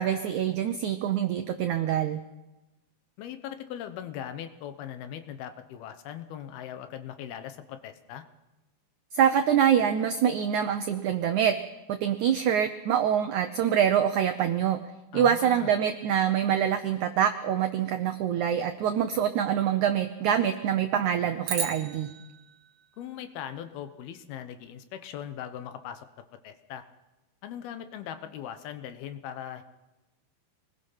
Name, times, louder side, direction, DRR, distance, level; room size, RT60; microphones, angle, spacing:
voice 1, 0.0-2.2 9.1-11.6 11.9-14.8 15.1-22.1, right 9 dB, 80° right, 8 dB, 1.7 m, -25 dB
voice 2, 3.2-8.2 15.1-15.7 23.0-26.1 26.4-26.8 27.4-29.6, left 10 dB, 75° left, 9 dB, 2.9 m, -40 dB
sound 1, 21.4-23.9, right 6 dB, 55° right, 1.9 m, -37 dB
26.0 x 20.0 x 5.6 m, 1.1 s
omnidirectional pair, 4.6 m